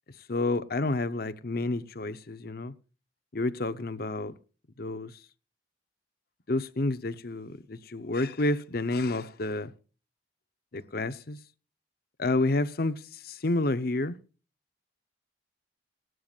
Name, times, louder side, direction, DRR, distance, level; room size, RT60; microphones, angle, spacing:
voice 1, 0.3-2.7 3.3-4.3 4.8-5.1 6.5-9.7 10.7-11.4 12.2-14.2, left 2 dB, 55° left, 0.9 m, -29 dB
19.5 x 12.5 x 2.5 m
head